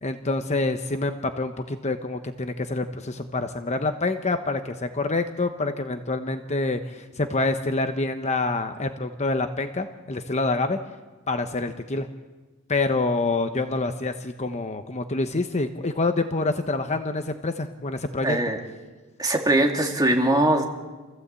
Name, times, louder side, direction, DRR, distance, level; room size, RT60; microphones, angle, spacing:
voice 1, 0.0-10.8 11.3-12.1 12.7-18.4, left 3 dB, 30° left, 7 dB, 1.0 m, -27 dB
voice 2, 18.2-18.6 19.2-20.6, right 1 dB, 20° right, 1 dB, 2.7 m, -21 dB
28.5 x 15.5 x 8.4 m, 1.3 s
head